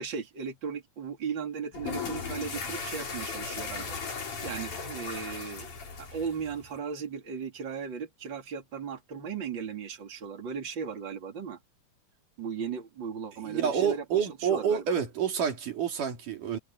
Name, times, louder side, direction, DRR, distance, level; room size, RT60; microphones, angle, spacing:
voice 1, 0.0-4.2 4.4-5.7 6.0-11.6 12.4-14.8, right 6 dB, 35° right, 3.4 m, -37 dB
sound 1, 1.7-6.8, left 5 dB, 75° left, 6.7 m, -37 dB
voice 2, 13.4-16.6, right 7 dB, 85° right, 4.6 m, -28 dB
omnidirectional pair, 3.6 m